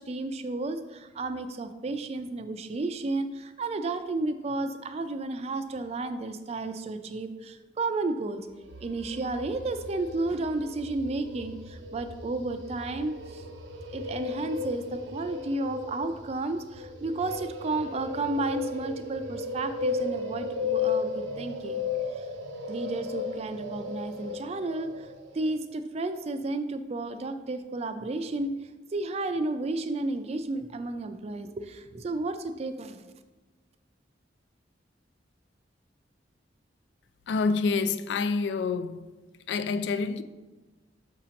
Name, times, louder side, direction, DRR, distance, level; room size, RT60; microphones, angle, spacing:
voice 1, 0.0-8.4 8.8-13.4 13.9-21.8 22.2-22.3 22.7-33.1, right 2 dB, 35° right, 0.4 m, -32 dB
sound 1, 8.5-25.5, left 4 dB, 90° right, 0.7 m, -35 dB
voice 2, 37.3-39.2 39.5-40.2, left 4 dB, 70° left, 0.3 m, -27 dB
6.5 x 2.8 x 5.1 m
head